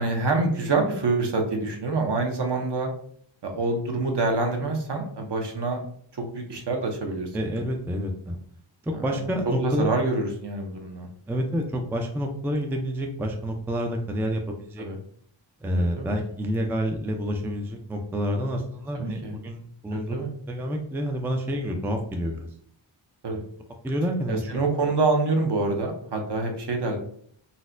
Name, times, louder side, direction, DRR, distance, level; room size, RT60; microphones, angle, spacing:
voice 1, 0.0-2.9 3.4-5.8 6.2-7.3 9.5-11.1 14.8-15.0 15.8-16.1 18.9-19.4 19.9-20.3 23.2-23.4 24.3-27.0, right 3 dB, 55° right, 3 dB, 0.8 m, -26 dB
voice 2, 7.3-8.4 8.8-9.9 11.3-14.9 15.6-20.2 20.5-22.5 23.3-23.4 23.8-24.5, equal, 5° right, 3 dB, 0.3 m, -28 dB
4.1 x 2.1 x 2.5 m, 0.62 s
wide cardioid pair, 90°, 48 cm